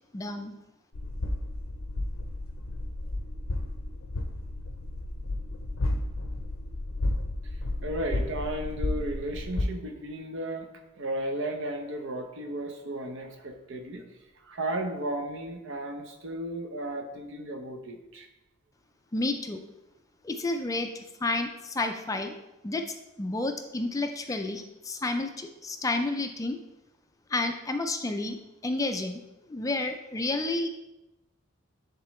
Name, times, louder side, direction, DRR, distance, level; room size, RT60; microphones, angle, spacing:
voice 1, 0.1-0.5 19.1-19.6 20.2-20.9 21.2-22.4 22.6-22.8 23.2-26.6 27.3-29.2 29.5-30.7, left 2 dB, 15° left, 6 dB, 0.4 m, -30 dB
sound 1, 0.9-9.6, left 1 dB, 80° left, 0.6 m, -32 dB
voice 2, 7.4-10.7 11.0-14.0 14.3-18.3, right 1 dB, 65° right, 5 dB, 0.9 m, -34 dB
10.5 x 3.7 x 3.1 m, 0.96 s
head